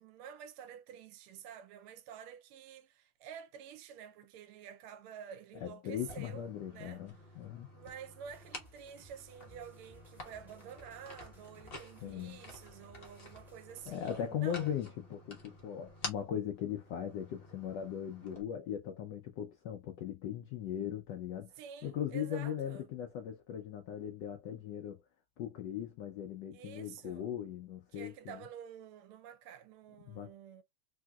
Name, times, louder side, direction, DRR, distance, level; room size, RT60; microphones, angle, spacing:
voice 1, 0.0-7.0 7.7-14.8 21.6-22.9 26.5-27.3 27.9-30.6, right 8 dB, 80° right, 1.4 m, -50 dB
voice 2, 5.6-7.7 12.0-12.4 13.9-21.6 21.8-25.0 25.4-28.4 30.1-30.3, left 9 dB, 80° left, 0.9 m, -39 dB
sound 1, 5.9-18.4, left 2 dB, 65° left, 0.5 m, -50 dB
sound 2, 8.2-13.9, left 1 dB, 5° right, 0.3 m, -62 dB
3.6 x 2.7 x 2.3 m
omnidirectional pair, 2.4 m